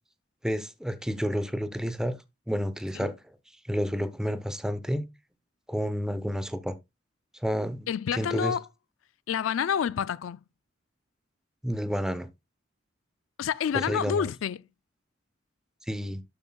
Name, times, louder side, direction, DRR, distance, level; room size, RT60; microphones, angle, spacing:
voice 1, 0.4-2.1 2.5-3.1 3.7-5.0 5.7-6.7 7.4-8.5 11.6-12.3 13.7-14.3 15.9-16.2, equal, 5° right, 0.7 m, -30 dB
voice 2, 7.9-8.7 9.3-10.4 13.4-14.6, left 8 dB, 85° left, 0.4 m, -28 dB
11.5 x 7.3 x 2.3 m
head